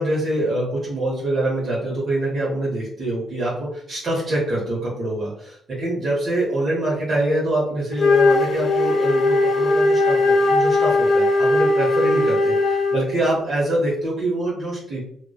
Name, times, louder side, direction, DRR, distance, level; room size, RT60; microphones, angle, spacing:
voice 1, 0.0-15.0, right 1 dB, 50° right, -5 dB, 0.8 m, -24 dB
Wind instrument woodwind instrument, 7.9-13.2, left 2 dB, 50° left, 0.4 m, -18 dB
2.5 x 2.1 x 2.3 m, 0.70 s
cardioid pair, 90°, 0 cm